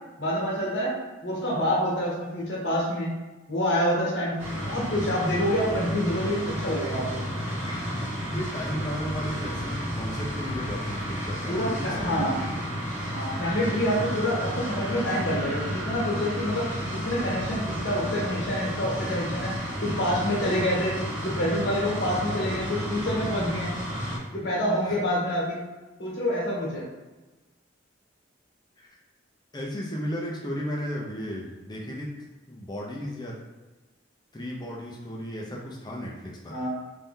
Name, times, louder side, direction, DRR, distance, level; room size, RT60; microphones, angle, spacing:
voice 1, 0.2-0.9 1.2-3.2 3.5-7.2 11.5-12.4 13.1-16.7 16.9-19.5 19.8-21.0 21.2-23.8 24.3-25.6 26.0-26.9 36.5-36.7, equal, 60° left, -5 dB, 1.2 m, -27 dB
sound 1, 4.4-24.2, equal, 10° right, 1.1 m, -32 dB
voice 2, 8.3-12.5 24.8-25.0 28.8-28.9 29.5-32.1 32.5-33.4 34.3-36.5, equal, 20° left, -2 dB, 0.6 m, -34 dB
3.3 x 2.8 x 3.6 m, 1.2 s
head